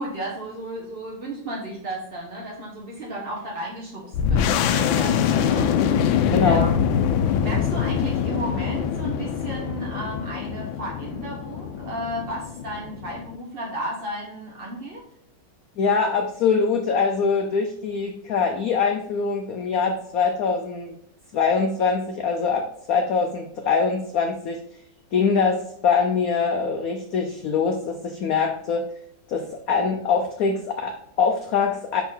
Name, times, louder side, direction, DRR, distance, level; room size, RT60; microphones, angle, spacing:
voice 1, 0.0-6.7 7.3-15.0, right 1 dB, 40° right, -3 dB, 1.0 m, -34 dB
sound 1, 4.1-13.4, left 8 dB, 90° left, 1.4 m, -24 dB
voice 2, 6.3-6.6 15.8-20.9 21.3-24.6 25.1-28.8 29.3-32.0, left 5 dB, 65° left, 3 dB, 0.9 m, -23 dB
5.9 x 4.2 x 3.8 m, 0.72 s
omnidirectional pair, 2.1 m